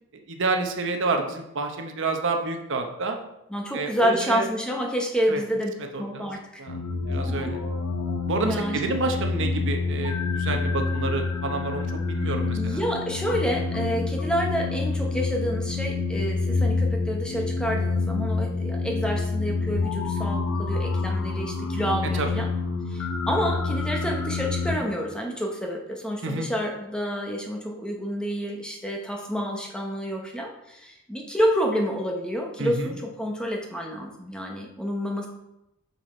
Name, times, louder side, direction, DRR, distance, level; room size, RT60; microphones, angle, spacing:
voice 1, 0.1-3.2 3.7-4.5 5.3-5.4 5.9-6.3 6.6-7.6 8.3-12.8 22.1-22.3 26.2-26.5 32.6-32.9, right 3 dB, 60° right, 5 dB, 0.8 m, -29 dB
voice 2, 3.5-5.7 6.0-6.4 7.3-7.5 8.4-8.8 12.6-22.5 22.9-35.3, equal, 5° left, 0 dB, 0.9 m, -28 dB
sound 1, 6.7-24.8, left 3 dB, 85° left, 0.8 m, -27 dB
5.8 x 5.6 x 4.3 m, 0.87 s
head